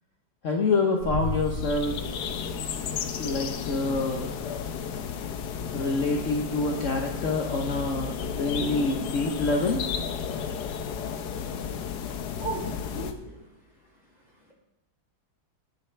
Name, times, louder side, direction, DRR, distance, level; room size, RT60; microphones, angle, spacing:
voice 1, 0.4-2.0 3.2-4.5 5.7-9.8, left 3 dB, 55° left, 1 dB, 1.2 m, -27 dB
sound 1, 1.0-3.3, left 1 dB, 55° right, 1.9 m, -34 dB
sound 2, 1.2-13.1, left 7 dB, 75° left, 1.3 m, -33 dB
voice 2, 12.4-13.4, right 3 dB, 25° right, -6 dB, 5.2 m, -35 dB
20.0 x 6.7 x 3.3 m, 0.89 s
omnidirectional pair, 1.8 m